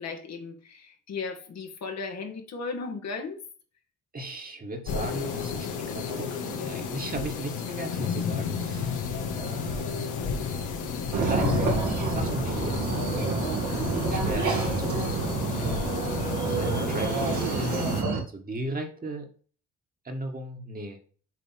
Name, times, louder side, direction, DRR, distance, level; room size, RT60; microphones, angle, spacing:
voice 1, 0.0-3.4, left 4 dB, 60° left, 3 dB, 1.8 m, -36 dB
voice 2, 4.1-9.0 9.3-10.0 11.1-11.6 12.0-12.9 14.1-15.1 16.5-19.3 20.0-21.0, right 1 dB, 30° right, 3 dB, 1.9 m, -36 dB
sound 1, 4.9-18.0, left 5 dB, 80° left, 1.6 m, -32 dB
sound 2, 11.1-18.2, right 4 dB, 75° right, 2.6 m, -28 dB
7.6 x 3.4 x 5.9 m, 0.41 s
cardioid pair, 90°, 30 cm